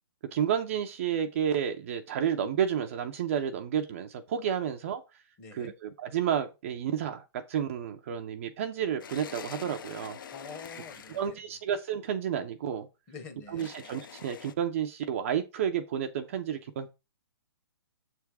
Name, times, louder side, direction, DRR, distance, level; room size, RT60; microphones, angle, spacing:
voice 1, 0.3-5.0 5.5-10.2 11.1-12.9 13.5-16.9, right 8 dB, 30° right, 0.5 m, -31 dB
voice 2, 5.4-5.7 10.3-11.4 13.1-13.7, left 5 dB, 20° left, 1.0 m, -46 dB
sound 1, 9.0-11.4 13.6-14.5, left 8 dB, 50° left, 0.7 m, -45 dB
7.3 x 3.5 x 4.7 m
hypercardioid pair, 165°, 14 cm